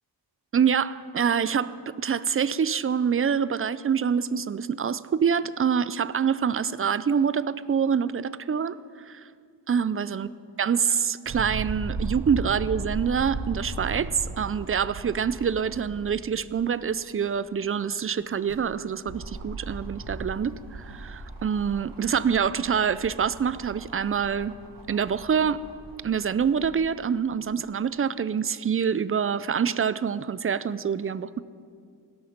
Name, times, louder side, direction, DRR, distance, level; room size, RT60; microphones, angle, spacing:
voice 1, 0.5-8.8 9.1-9.2 9.7-10.3 10.6-24.5 24.9-25.6 26.0-31.4, right 7 dB, 35° right, 16 dB, 0.4 m, -26 dB
sound 1, 11.3-16.3 16.8-16.9 18.2-26.7 27.5-27.6, right 3 dB, 80° right, 1.8 m, -37 dB
17.5 x 13.0 x 5.2 m, 2.2 s
wide cardioid pair, 110°, 42 cm